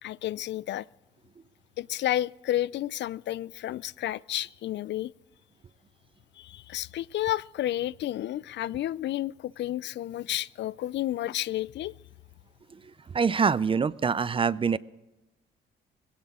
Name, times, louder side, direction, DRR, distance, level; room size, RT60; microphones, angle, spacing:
voice 1, 0.0-0.9 1.8-5.1 6.4-11.9, left 13 dB, 65° left, 0.4 m, -31 dB
voice 2, 13.1-14.8, right 5 dB, 25° right, 0.5 m, -25 dB
19.5 x 17.0 x 3.6 m
cardioid pair, 90°, 20 cm